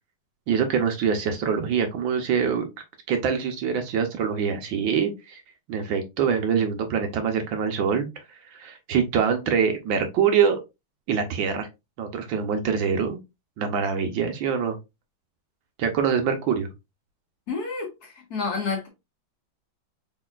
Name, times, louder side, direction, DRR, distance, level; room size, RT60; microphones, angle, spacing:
voice 1, 0.5-2.7 3.1-5.4 5.7-10.6 11.1-11.7 12.0-13.2 13.6-14.8 15.8-16.7, right 6 dB, 70° right, 1.4 m, -24 dB
voice 2, 17.5-18.9, left 4 dB, 50° left, 1.8 m, -30 dB
4.5 x 4.1 x 2.4 m
omnidirectional pair, 2.3 m